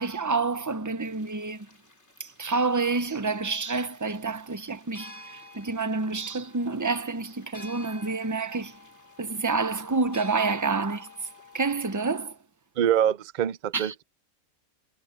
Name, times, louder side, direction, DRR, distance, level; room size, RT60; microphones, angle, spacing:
voice 1, 0.0-1.7 2.2-8.8 9.2-11.1 11.5-12.4 13.7-13.9, right 4 dB, 15° right, 0.6 m, -28 dB
sound 1, 1.0-12.2, left 1 dB, 50° left, 4.4 m, -50 dB
voice 2, 12.8-14.0, right 10 dB, 60° right, 0.5 m, -25 dB
omnidirectional pair, 1.5 m